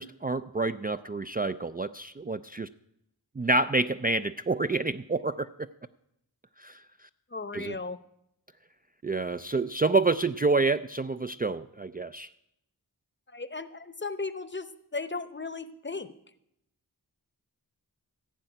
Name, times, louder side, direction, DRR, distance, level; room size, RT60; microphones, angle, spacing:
voice 1, 0.0-2.7 3.4-5.7 6.6-6.8 7.5-7.8 9.0-12.3, right 3 dB, 25° right, 11 dB, 0.4 m, -28 dB
voice 2, 7.3-8.0 13.3-14.7 14.9-16.1, left 3 dB, 30° left, 13 dB, 0.8 m, -36 dB
15.0 x 5.7 x 9.0 m, 0.80 s
wide cardioid pair, 40°, 40 cm